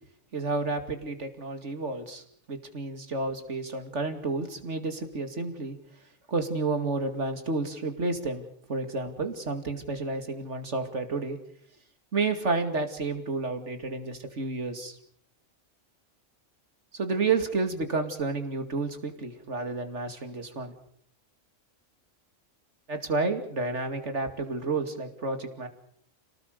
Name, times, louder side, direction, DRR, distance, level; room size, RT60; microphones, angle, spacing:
voice 1, 0.3-2.2 2.5-5.8 6.3-8.4 8.7-11.4 12.1-15.0 16.9-20.7 22.9-25.7, right 3 dB, 70° right, 7 dB, 2.8 m, -30 dB
27.5 x 18.5 x 6.7 m, 0.64 s
omnidirectional pair, 1.2 m